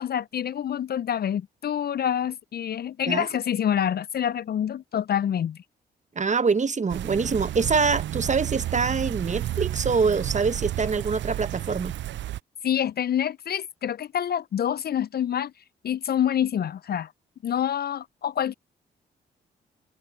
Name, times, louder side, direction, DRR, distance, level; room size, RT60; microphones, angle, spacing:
voice 1, 0.0-5.6 12.6-15.5 15.8-17.1 17.4-18.5, left 9 dB, 50° left, 0.6 m, -27 dB
voice 2, 6.1-11.9, right 5 dB, 35° right, 1.2 m, -25 dB
sound 1, 6.9-12.4, right 13 dB, 60° right, 0.5 m, -31 dB
hypercardioid pair, 45°, 21 cm